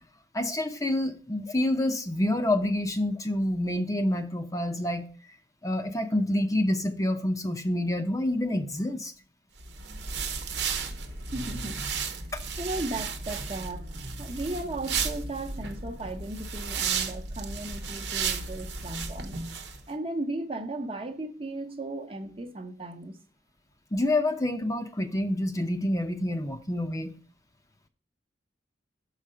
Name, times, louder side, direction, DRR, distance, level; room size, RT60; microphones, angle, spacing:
voice 1, 0.3-5.1 5.6-9.1 12.3-12.4 23.9-27.2, left 1 dB, 20° left, 0.7 m, -27 dB
sound 1, 9.6-19.8, right 5 dB, 80° right, 1.0 m, -34 dB
voice 2, 11.0-12.0 12.6-19.4 19.9-23.2, right 2 dB, 30° right, 0.9 m, -36 dB
6.6 x 4.9 x 6.6 m
head